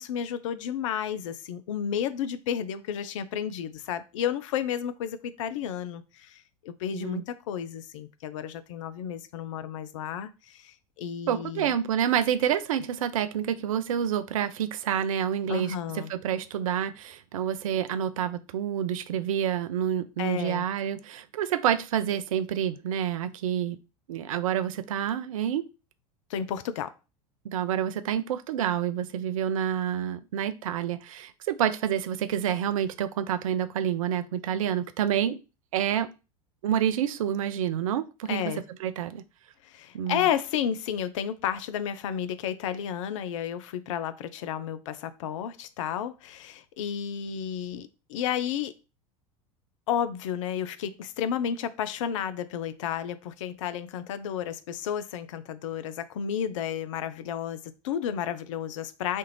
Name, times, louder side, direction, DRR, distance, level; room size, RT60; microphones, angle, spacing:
voice 1, 0.0-11.7 15.5-16.1 20.2-20.7 26.3-26.9 38.3-38.6 39.6-48.7 49.9-59.2, left 9 dB, 55° left, 0.4 m, -32 dB
voice 2, 11.3-23.8 24.1-25.7 27.4-35.4 35.7-36.1 36.6-38.5 38.8-39.2 39.9-40.3, right 9 dB, 60° right, 0.4 m, -28 dB
4.1 x 2.4 x 3.2 m
figure-of-eight pair, 80°, 19 cm